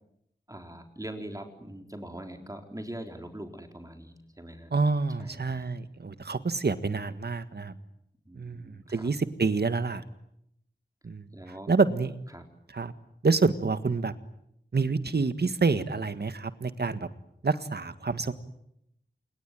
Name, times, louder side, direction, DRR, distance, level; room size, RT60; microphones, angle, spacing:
voice 1, 0.5-4.7 5.2-5.7 8.3-9.1 11.3-11.7 12.3-12.5, right 1 dB, 20° right, 5 dB, 4.0 m, -42 dB
voice 2, 4.7-7.7 8.4-10.0 11.0-11.3 11.7-12.2 12.7-12.9 13.2-14.1 14.7-17.1 17.4-18.3, right 4 dB, 70° right, 11 dB, 1.8 m, -27 dB
27.5 x 22.5 x 9.3 m, 0.78 s
wide cardioid pair, 60°, 18 cm